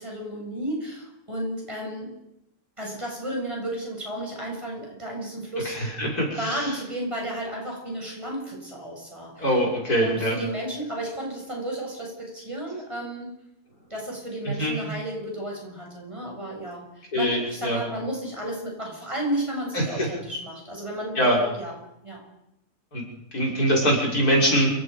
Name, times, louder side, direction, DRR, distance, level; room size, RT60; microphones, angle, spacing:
voice 1, 0.0-2.1 2.8-9.6 10.0-13.4 13.9-21.7 22.0-22.2, right 1 dB, 20° right, -1 dB, 7.5 m, -33 dB
voice 2, 6.0-6.7 9.4-10.4 14.4-14.7 17.1-17.8 19.7-20.1 21.2-21.4 22.9-23.0 23.3-24.7, equal, 75° left, -2 dB, 6.6 m, -23 dB
28.5 x 17.0 x 5.3 m, 0.80 s
omnidirectional pair, 1.6 m